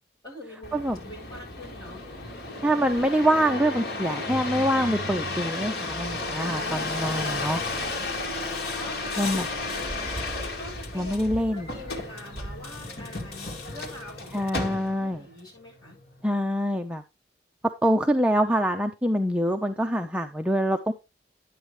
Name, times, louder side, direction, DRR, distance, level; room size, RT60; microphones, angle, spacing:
voice 1, 0.2-2.1 8.1-8.4 8.8-10.2 10.6-11.1 11.5-14.4 14.7-16.0, left 1 dB, 20° left, -3 dB, 7.4 m, -44 dB
sound 1, 0.6-15.2 15.8-16.3, left 2 dB, 60° left, 2.3 m, -33 dB
voice 2, 2.6-7.6 9.2-9.5 10.9-11.7 14.3-15.2 16.2-17.0 17.8-20.9, equal, 5° right, 5 dB, 0.5 m, -25 dB
11.0 x 8.9 x 3.2 m, 0.25 s
head